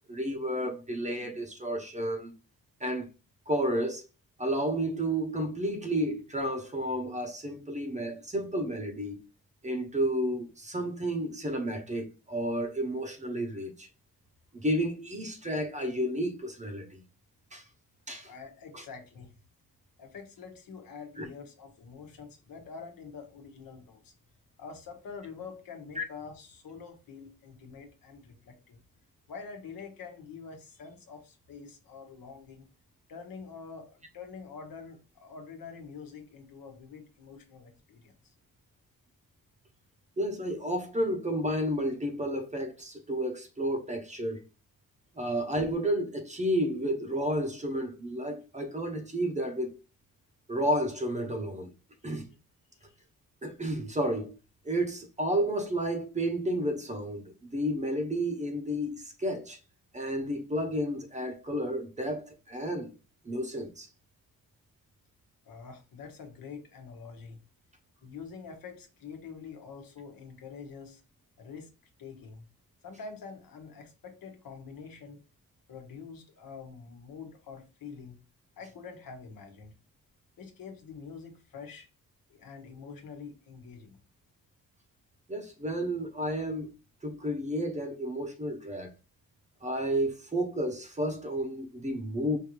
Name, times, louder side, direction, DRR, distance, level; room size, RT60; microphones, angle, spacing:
voice 1, 0.1-2.3 2.8-3.1 3.5-4.0 4.4-9.2 9.6-13.9 14.5-17.0 17.5-17.6 18.1-18.3 18.7-18.8 21.2-21.3 26.0-26.1 40.2-44.4 45.2-49.8 50.5-51.7 52.0-52.3 53.4-54.3 54.6-59.6 59.9-62.9 63.2-63.9 85.3-86.7 87.0-88.9 89.6-92.4, equal, 20° right, 0.7 m, -31 dB
voice 2, 18.2-19.3 20.0-24.1 24.6-28.8 29.3-32.7 33.1-38.3 52.0-52.4 52.8-53.0 65.4-67.4 68.0-71.0 71.4-71.7 72.0-72.4 72.8-75.2 75.7-78.2 78.6-79.7 80.4-81.9 82.3-84.0, left 5 dB, 75° left, 1.1 m, -46 dB
5.1 x 2.6 x 3.0 m
wide cardioid pair, 130°, 35 cm